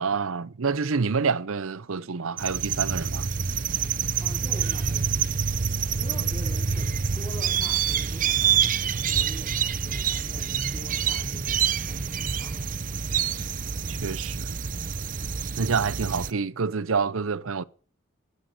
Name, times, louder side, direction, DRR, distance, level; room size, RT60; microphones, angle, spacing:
voice 1, 0.0-3.3 13.9-14.6 15.6-17.6, right 5 dB, 75° right, 0.7 m, -27 dB
sound 1, 2.4-16.3, right 7 dB, 40° right, 0.6 m, -27 dB
voice 2, 4.2-12.8, equal, 20° left, 3.3 m, -43 dB
17.0 x 9.9 x 6.5 m
head